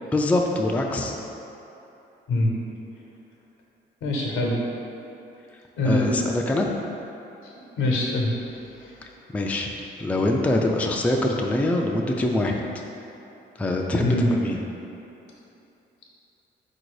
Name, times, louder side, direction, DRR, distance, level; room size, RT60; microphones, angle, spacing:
voice 1, 0.1-1.2 5.8-6.7 9.3-9.7 10.0-12.6 13.6-14.6, left 1 dB, 5° left, 1 dB, 0.3 m, -24 dB
voice 2, 4.0-4.5 5.8-6.2 7.4-8.3 14.0-14.3, left 2 dB, 85° left, -1 dB, 0.8 m, -23 dB
3.9 x 2.6 x 4.7 m, 3.0 s
cardioid pair, 90°, 20 cm